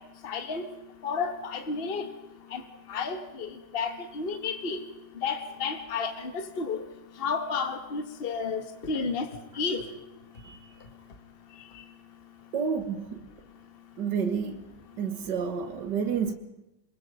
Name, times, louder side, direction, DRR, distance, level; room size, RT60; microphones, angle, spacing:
voice 1, 0.2-0.6 1.0-2.1 2.5-2.6 2.9-4.8 5.2-6.8 7.2-9.3 9.6-9.8, left 5 dB, 40° left, 7 dB, 0.8 m, -31 dB
voice 2, 12.5-13.2 14.0-14.6 15.0-16.3, right 6 dB, 70° right, 8 dB, 1.0 m, -29 dB
27.0 x 21.5 x 5.2 m, 0.92 s
omnidirectional pair, 4.2 m